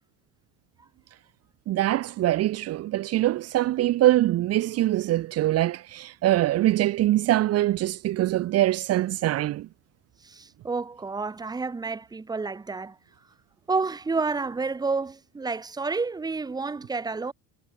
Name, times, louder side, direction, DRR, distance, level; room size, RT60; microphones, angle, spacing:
voice 1, 1.7-9.7, right 15 dB, 45° right, 1.5 m, -23 dB
voice 2, 10.2-13.0 13.7-17.3, right 4 dB, 10° right, 2.0 m, -30 dB
cardioid pair, 170°, 35 cm